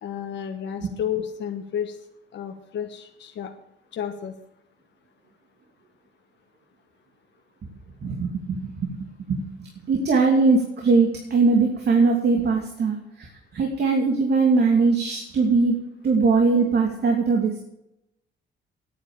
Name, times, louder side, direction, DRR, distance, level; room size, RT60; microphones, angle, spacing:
voice 1, 0.0-2.0 2.3-3.5 3.9-4.3, left 9 dB, 65° left, 4 dB, 1.3 m, -31 dB
voice 2, 8.0-9.0 9.3-9.4 9.9-13.3 13.5-15.8 16.0-17.6, right 4 dB, 55° right, 1 dB, 2.8 m, -21 dB
9.8 x 9.3 x 8.8 m, 0.84 s
cardioid pair, 90°, 20 cm